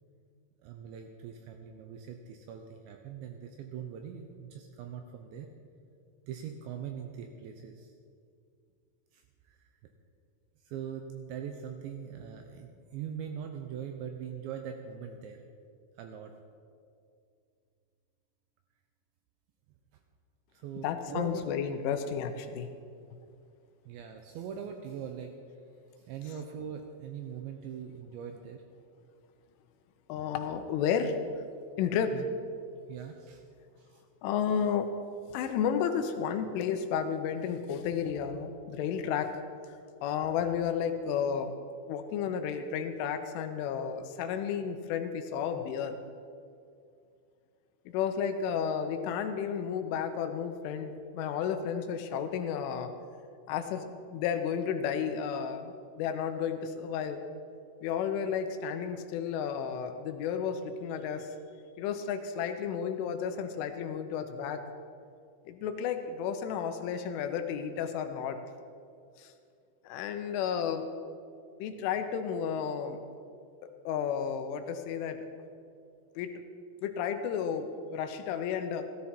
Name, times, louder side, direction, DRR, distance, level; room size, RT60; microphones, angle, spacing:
voice 1, 0.6-5.5 6.3-7.9 9.1-9.2 9.5-9.6 10.7-15.4 16.0-16.3 20.5-21.4 23.9-25.3 26.1-28.6 32.1-32.3 32.9-33.4 33.8-34.0, right 8 dB, 80° right, 4 dB, 2.7 m, -41 dB
voice 2, 20.8-22.7 30.1-31.2 31.8-32.2 34.2-34.9 35.3-39.3 40.0-41.5 41.9-46.0 47.9-52.9 53.5-53.9 54.1-57.2 57.8-61.3 61.8-64.6 65.5-68.4 69.2-69.3 69.8-70.9 71.6-73.0 73.6-75.3 76.2-76.4 76.8-78.9, left 7 dB, 80° left, 7 dB, 3.2 m, -32 dB
15.0 x 14.0 x 4.4 m, 2.3 s
omnidirectional pair, 5.9 m